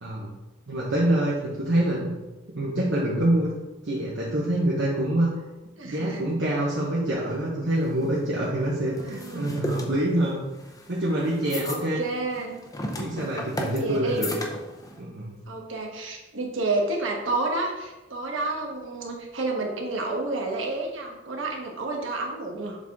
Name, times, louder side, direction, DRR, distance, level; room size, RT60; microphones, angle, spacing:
voice 1, 0.7-2.1 2.5-3.5 3.8-5.3 5.8-10.4 10.9-12.0 13.0-14.3 15.0-15.3, right 1 dB, 65° right, -6 dB, 1.1 m, -25 dB
voice 2, 5.8-6.2 8.9-9.5 11.6-12.6 13.6-14.3 15.5-22.8, right 2 dB, 80° right, 1 dB, 1.2 m, -30 dB
sound 1, 7.7-15.0, left 1 dB, 20° left, 0.7 m, -36 dB
7.1 x 4.0 x 3.6 m, 1.1 s
head